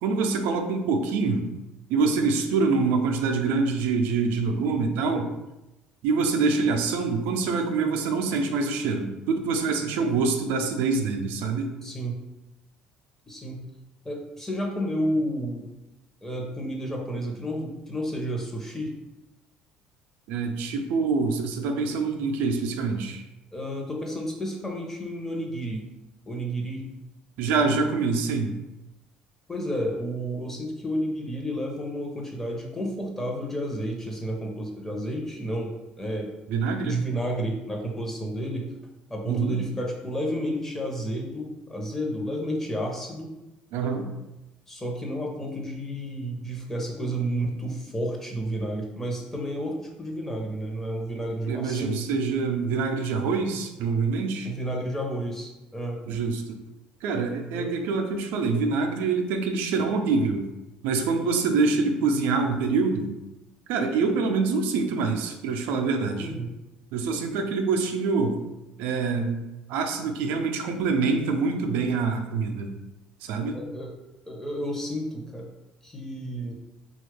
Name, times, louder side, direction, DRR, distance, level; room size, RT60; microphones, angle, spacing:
voice 1, 0.0-1.5 1.9-5.3 6.0-11.7 20.3-23.2 27.4-28.5 36.5-37.0 39.3-39.6 43.7-44.1 51.5-54.5 56.1-56.6 57.0-60.4 60.8-63.1 63.7-66.3 66.9-68.4 68.8-69.4 69.7-72.7 73.2-73.6, right 4 dB, 80° right, 4 dB, 0.4 m, -25 dB
voice 2, 11.8-12.1 13.3-13.6 14.0-15.7 16.2-18.9 23.5-25.9 26.3-26.9 29.5-35.7 36.0-36.3 36.8-38.7 39.1-43.3 44.7-52.0 54.4-56.0 57.5-57.7 66.2-66.5 73.5-73.9 74.3-75.5 75.8-76.5, equal, 15° left, 0 dB, 0.8 m, -31 dB
2.9 x 2.3 x 3.3 m, 0.96 s
supercardioid pair, 95°, 3 cm